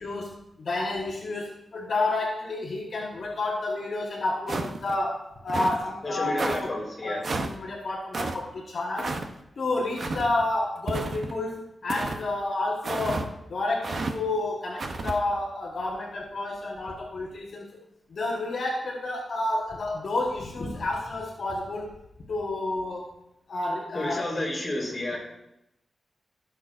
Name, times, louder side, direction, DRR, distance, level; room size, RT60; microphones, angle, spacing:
voice 1, 0.0-6.7 7.0-9.1 9.6-17.7 18.1-21.9 22.3-23.1 23.5-24.3 25.1-25.2, left 2 dB, 60° left, -2 dB, 1.3 m, -30 dB
sound 1, 4.5-5.0 5.5-5.8 6.4-6.6 7.2-7.5 8.1-8.4 9.0-9.3 10.0-10.3 10.9-11.4 11.9-12.2 12.8-13.3 13.8-14.1 14.8-15.2, right 3 dB, 50° right, 0.8 m, -31 dB
voice 2, 6.0-7.2 23.9-25.2, left 1 dB, 20° left, -4 dB, 4.0 m, -30 dB
16.5 x 6.6 x 2.6 m, 0.85 s
wide cardioid pair, 130°, 0 cm